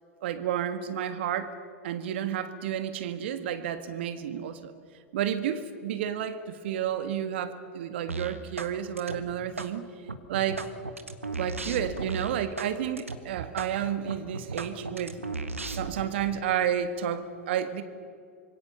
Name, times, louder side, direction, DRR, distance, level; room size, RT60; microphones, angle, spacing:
voice 1, 0.2-1.5 1.8-4.7 5.1-9.9 10.3-10.6 11.4-15.2 15.7-17.8, right 9 dB, 55° right, 10 dB, 1.7 m, -31 dB
sound 1, 8.1-8.7 9.0-9.7 10.1-12.7 13.0-13.2 13.6-13.7 14.1-16.1, right 3 dB, 85° right, 1.5 m, -35 dB
26.0 x 23.0 x 6.9 m, 2.2 s
figure-of-eight pair, 90°, 7 cm